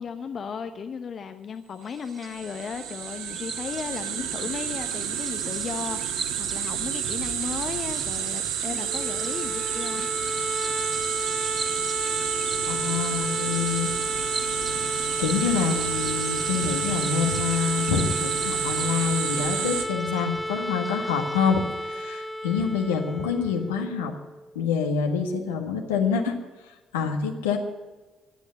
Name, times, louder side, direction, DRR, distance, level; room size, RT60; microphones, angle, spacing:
voice 1, 0.0-10.1, left 6 dB, 50° left, 8 dB, 0.8 m, -35 dB
Bird vocalization bird call bird song, 1.8-21.4, right 3 dB, 30° right, 2.5 m, -43 dB
sound 1, 2.1-19.8, right 9 dB, 70° right, 1.2 m, -30 dB
sound 2, 8.8-24.6, equal, 10° left, 1.1 m, -33 dB
voice 2, 12.6-13.9 15.2-24.1 24.5-27.6, left 6 dB, 80° left, 3 dB, 1.6 m, -27 dB
16.0 x 10.5 x 6.5 m, 1.3 s
figure-of-eight pair, 45°, 0 cm